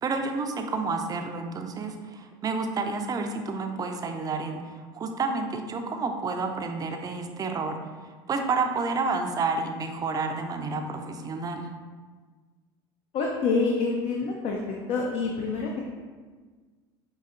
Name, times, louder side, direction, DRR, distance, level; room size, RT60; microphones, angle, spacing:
voice 1, 0.0-4.6 4.9-7.8 8.3-11.7, right 4 dB, 30° right, 5 dB, 0.4 m, -30 dB
voice 2, 13.1-14.6 14.9-15.8, left 4 dB, 50° left, 0 dB, 0.5 m, -26 dB
5.5 x 2.7 x 2.5 m, 1.4 s
hypercardioid pair, 90°, 13 cm